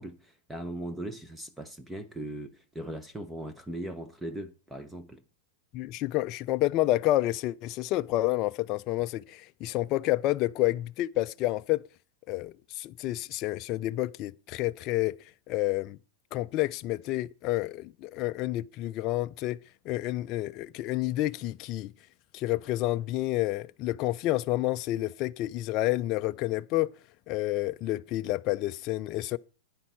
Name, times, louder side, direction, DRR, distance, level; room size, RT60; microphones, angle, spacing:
voice 1, 0.0-5.2, right 1 dB, 5° right, 0.9 m, -39 dB
voice 2, 5.7-11.8 12.3-15.1 15.5-16.0 16.3-19.6 19.9-21.9 22.3-26.9 27.3-29.4, left 16 dB, 40° left, 0.4 m, -29 dB
11.0 x 9.4 x 4.5 m
hypercardioid pair, 115°, 0 cm